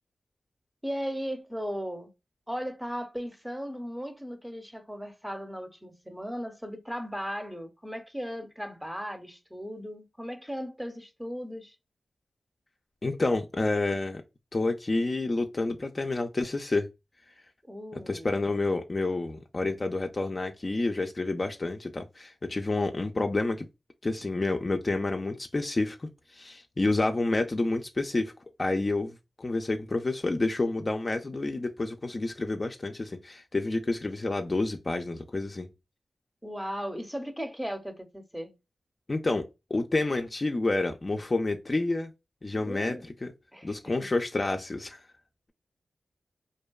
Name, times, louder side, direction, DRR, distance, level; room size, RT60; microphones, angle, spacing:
voice 1, 0.8-2.1 2.5-11.8 17.6-18.4 36.4-38.5 42.6-43.0 43.5-43.7, equal, 5° right, 0.6 m, -37 dB
voice 2, 13.0-14.2 14.5-16.9 18.1-23.6 24.0-28.3 28.6-35.7 39.1-39.5 39.7-42.1 42.4-43.3 43.6-45.0, left 2 dB, 40° left, 0.3 m, -29 dB
2.6 x 2.2 x 2.2 m
cardioid pair, 50°, 0 cm